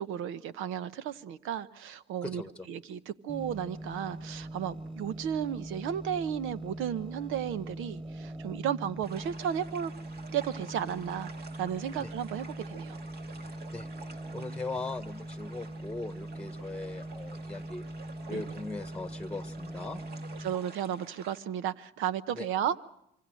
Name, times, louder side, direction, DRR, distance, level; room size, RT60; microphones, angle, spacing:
voice 1, 0.0-2.4 2.7-9.9 10.3-11.3 11.6-13.0 18.3-18.4 20.4-22.8, right 9 dB, 75° right, 14 dB, 1.0 m, -34 dB
voice 2, 2.2-2.7 12.0-12.1 13.7-17.8 18.3-20.0 22.3-22.5, left 3 dB, 5° left, 11 dB, 1.3 m, -39 dB
sound 1, 3.3-20.5, right 1 dB, 25° right, 4.7 m, -41 dB
sound 2, 9.0-21.4, right 4 dB, 50° right, 2.6 m, -51 dB
26.0 x 24.5 x 6.4 m, 0.79 s
supercardioid pair, 75°, 21 cm